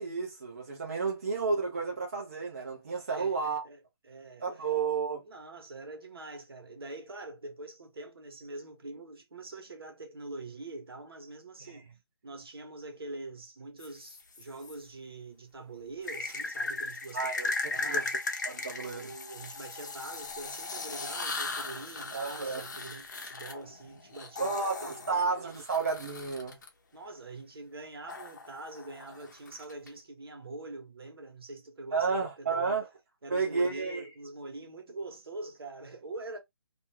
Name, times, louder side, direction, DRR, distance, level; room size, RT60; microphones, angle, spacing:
voice 1, 0.0-3.7 4.4-5.2 17.1-17.5 17.8-18.0 18.4-19.1 22.1-22.6 24.4-26.6 31.9-32.9 33.3-34.1, right 4 dB, 35° right, 0.6 m, -31 dB
voice 2, 3.1-4.7 5.2-11.9 12.2-17.3 17.7-18.2 18.8-25.0 26.9-32.7 33.2-36.4, right 2 dB, 70° right, 1.0 m, -44 dB
sound 1, 13.8-14.7 16.0-26.7 28.1-29.9, left 3 dB, 45° left, 0.6 m, -38 dB
2.5 x 2.2 x 2.9 m
hypercardioid pair, 175°, 13 cm